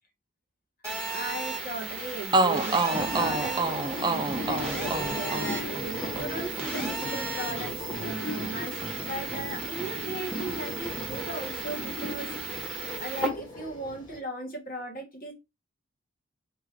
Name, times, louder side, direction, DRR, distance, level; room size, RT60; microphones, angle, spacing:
Telephone, 0.8-13.3, right 3 dB, 5° left, 1.4 m, -35 dB
voice 1, 1.0-12.7 13.0-15.3, right 1 dB, 40° left, 1.8 m, -38 dB
sound 1, 1.9-2.0 2.3-10.2 10.4-11.6, right 3 dB, 20° right, 0.4 m, -31 dB
sound 2, 2.9-14.2, left 2 dB, 20° left, 1.1 m, -38 dB
4.7 x 3.6 x 3.1 m
head